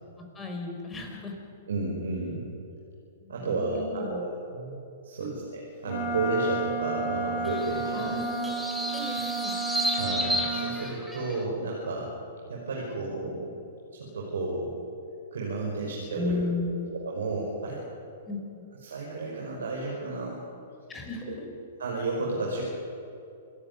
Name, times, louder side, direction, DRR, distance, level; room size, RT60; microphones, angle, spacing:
voice 1, 0.3-1.3 3.2-4.2 5.2-5.4 7.9-9.6 16.2-16.9 18.3-18.7 20.9-21.6, left 3 dB, 15° left, 2 dB, 5.4 m, -35 dB
voice 2, 1.7-2.5 3.3-8.5 9.9-12.1 12.5-13.5 13.9-14.7 15.3-16.4 16.9-17.8 18.8-20.4 21.3-21.4 21.8-22.6, right 2 dB, 70° right, -2 dB, 5.7 m, -32 dB
Wind instrument woodwind instrument, 5.8-10.8, right 3 dB, 45° left, 4.0 m, -32 dB
sound 1, 7.4-11.4, equal, ahead, 3.3 m, -32 dB
27.5 x 13.0 x 9.7 m, 2.7 s
figure-of-eight pair, 110°, 0 cm